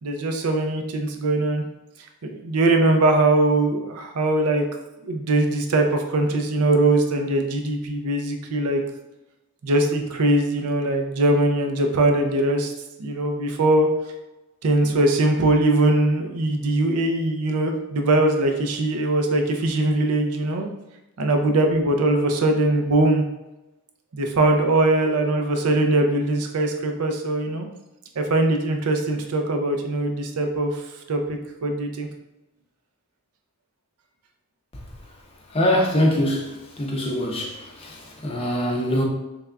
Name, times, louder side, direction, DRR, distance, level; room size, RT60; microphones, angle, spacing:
voice 1, 0.0-1.6 2.2-4.6 5.0-8.8 9.6-12.7 13.0-13.9 14.6-20.7 21.2-23.2 24.1-27.7 28.2-30.8 31.1-32.1, right 2 dB, 85° right, 4 dB, 0.5 m, -21 dB
voice 2, 35.5-39.0, left 1 dB, 25° left, 0 dB, 0.5 m, -23 dB
3.6 x 3.4 x 2.2 m, 0.99 s
head